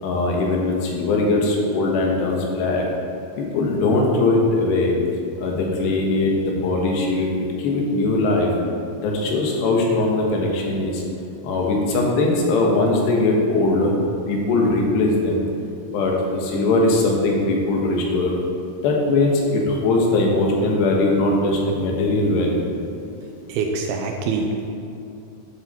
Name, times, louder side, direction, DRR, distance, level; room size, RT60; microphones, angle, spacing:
voice 1, 0.0-2.8 3.4-4.9 5.4-8.5 9.0-11.0 11.4-13.9 14.3-15.5 15.9-18.3 18.8-22.7, left 2 dB, 80° left, -1 dB, 3.5 m, -20 dB
voice 2, 23.5-24.7, right 4 dB, 80° right, 3 dB, 2.4 m, -25 dB
10.5 x 7.8 x 4.3 m, 2.6 s
omnidirectional pair, 4.9 m